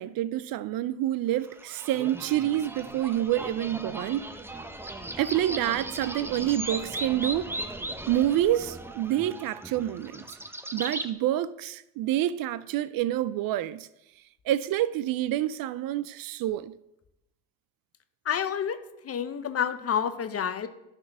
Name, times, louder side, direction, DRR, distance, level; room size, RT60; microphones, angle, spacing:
voice 1, 0.0-4.2 5.2-7.5 8.1-10.2 10.7-13.9 14.5-16.8, right 13 dB, 60° right, 0.5 m, -27 dB
sound 1, 1.4-11.1, right 1 dB, 5° right, 0.7 m, -38 dB
voice 2, 18.2-18.8 19.0-20.7, left 8 dB, 35° left, 0.8 m, -29 dB
10.5 x 4.3 x 6.0 m
supercardioid pair, 85°, 40 cm